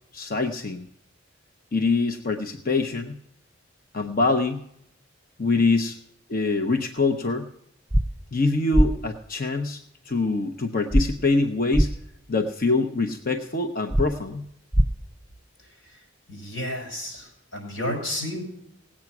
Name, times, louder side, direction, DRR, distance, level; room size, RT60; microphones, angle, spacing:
voice 1, 0.1-0.9 1.7-3.1 3.9-4.6 5.4-6.0 6.3-7.5 8.3-9.8 10.0-11.9 12.3-14.4, left 3 dB, 45° left, 6 dB, 0.8 m, -24 dB
sound 1, 7.9-8.0 8.7-8.9 10.9-11.0 11.7-11.9 13.9-14.1 14.7-14.9, right 1 dB, 5° right, 0.6 m, -18 dB
voice 2, 15.6-18.4, left 1 dB, 85° left, 2 dB, 5.6 m, -33 dB
18.0 x 8.7 x 6.0 m, 0.76 s
head